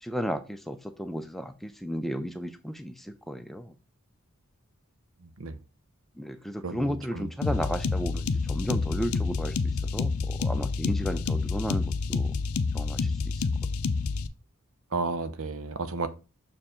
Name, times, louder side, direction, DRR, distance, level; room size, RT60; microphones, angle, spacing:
voice 1, 0.0-3.7 6.2-11.8 12.1-12.3 12.7-13.4, equal, ahead, 0.4 m, -34 dB
voice 2, 6.6-7.3 14.9-16.1, right 3 dB, 70° right, 0.8 m, -32 dB
sound 1, 7.4-14.3, left 4 dB, 80° left, 0.5 m, -28 dB
6.5 x 4.7 x 3.6 m
head